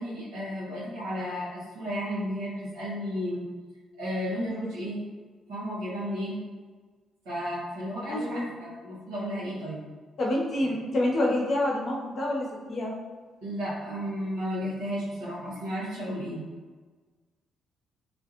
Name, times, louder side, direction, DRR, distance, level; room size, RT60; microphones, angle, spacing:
voice 1, 0.0-3.4 4.0-5.0 5.5-6.4 7.2-9.8 13.4-16.4, equal, 80° right, -9 dB, 1.2 m, -33 dB
voice 2, 8.1-8.5 10.2-12.9, left 1 dB, 55° left, -2 dB, 0.7 m, -27 dB
2.8 x 2.5 x 2.8 m, 1.4 s
hypercardioid pair, 45°, 0 cm